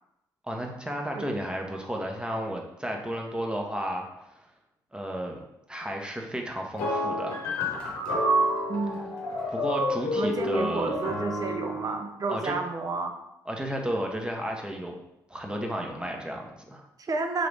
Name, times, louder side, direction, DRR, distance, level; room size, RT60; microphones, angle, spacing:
voice 1, 0.4-4.4 4.9-5.4 5.7-7.4 9.5-11.0 12.3-12.6 13.5-14.9 15.3-16.9, equal, 10° right, 1 dB, 0.9 m, -33 dB
sound 1, 6.8-12.0, equal, 80° left, 0.9 m, -28 dB
voice 2, 8.7-9.0 10.2-13.2 17.0-17.5, right 3 dB, 40° right, 6 dB, 0.6 m, -31 dB
3.9 x 2.9 x 3.4 m, 0.85 s
hypercardioid pair, 45°, 9 cm